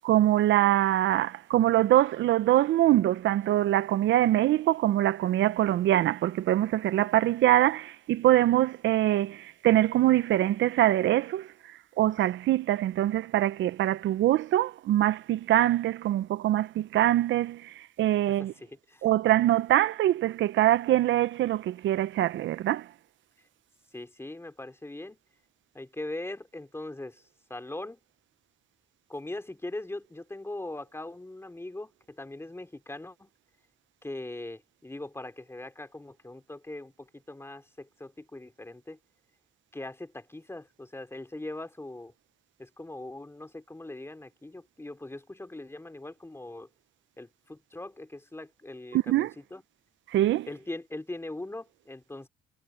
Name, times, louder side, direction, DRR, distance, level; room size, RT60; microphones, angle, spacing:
voice 1, 0.0-11.5 12.0-18.5 19.0-22.9 48.9-49.3 50.1-50.5, right 14 dB, 70° right, 0.6 m, -24 dB
voice 2, 18.3-19.1 23.9-25.2 25.7-27.2 27.5-28.0 29.1-33.3 34.0-39.0 39.7-42.1 42.6-46.7 47.2-49.6 50.5-52.3, left 2 dB, 10° left, 3.4 m, -41 dB
cardioid pair, 90°, 20 cm